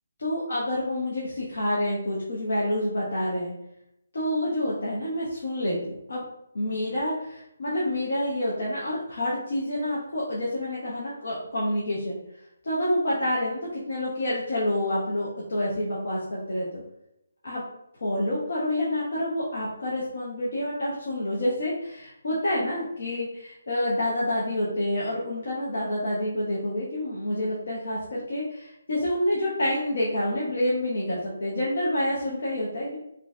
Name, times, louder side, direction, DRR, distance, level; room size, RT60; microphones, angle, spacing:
voice 1, 0.2-3.5 4.1-6.2 6.5-12.2 12.6-16.8 17.4-17.6 18.0-33.0, left 1 dB, 65° left, -6 dB, 0.8 m, -28 dB
3.1 x 2.6 x 2.4 m, 0.82 s
hypercardioid pair, 165°, 0 cm